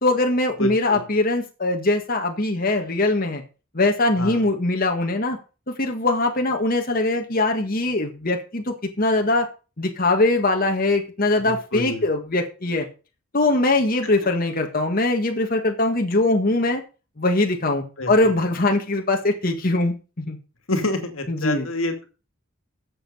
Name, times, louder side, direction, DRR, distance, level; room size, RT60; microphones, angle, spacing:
voice 1, 0.0-3.4 3.7-5.4 5.8-9.5 9.8-12.9 13.3-16.8 17.2-20.4 21.3-21.6, left 2 dB, 45° left, 3 dB, 1.8 m, -22 dB
voice 2, 0.6-1.1 4.2-4.4 11.4-12.1 14.2-14.3 18.0-18.5 20.7-22.1, left 1 dB, 80° left, 6 dB, 2.3 m, -28 dB
12.5 x 7.8 x 5.5 m, 0.34 s
head